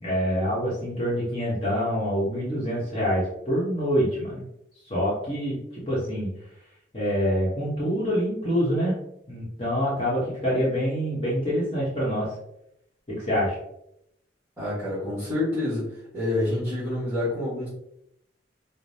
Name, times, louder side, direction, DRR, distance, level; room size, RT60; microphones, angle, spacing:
voice 1, 0.0-4.4 4.9-6.3 6.9-8.9 9.3-12.3 13.1-13.6, equal, 30° left, -7 dB, 1.1 m, -26 dB
voice 2, 14.6-15.9 16.1-17.7, left 1 dB, 15° right, -10 dB, 1.4 m, -27 dB
5.0 x 2.1 x 2.7 m, 0.79 s
head